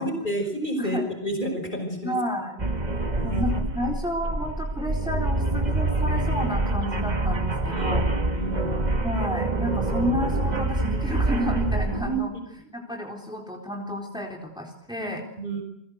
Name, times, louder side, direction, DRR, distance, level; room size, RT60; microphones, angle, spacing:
voice 1, 0.0-2.1 3.2-3.4 7.7-8.8 12.0-12.2 15.0-15.1 15.4-15.6, right 1 dB, 50° left, 5 dB, 5.9 m, -30 dB
voice 2, 2.0-2.7 3.2-8.0 9.0-12.3 12.7-15.2, equal, 5° right, 0 dB, 3.9 m, -31 dB
sound 1, 2.6-12.2, right 2 dB, 45° right, 2.0 m, -26 dB
29.5 x 23.5 x 8.0 m, 0.76 s
omnidirectional pair, 1.1 m